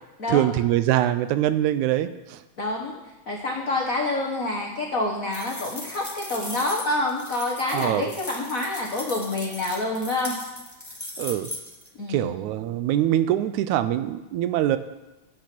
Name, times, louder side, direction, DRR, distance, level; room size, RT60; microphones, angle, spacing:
voice 1, 0.3-2.4 7.7-8.1 11.2-11.5 12.1-14.8, right 12 dB, 80° right, 12 dB, 1.9 m, -23 dB
voice 2, 2.6-3.0 3.3-10.3 12.0-12.3, left 2 dB, 80° left, -1 dB, 0.7 m, -27 dB
sound 1, 5.3-11.9, left 1 dB, 20° left, 0.4 m, -38 dB
10.0 x 8.5 x 6.0 m, 1.0 s
omnidirectional pair, 3.5 m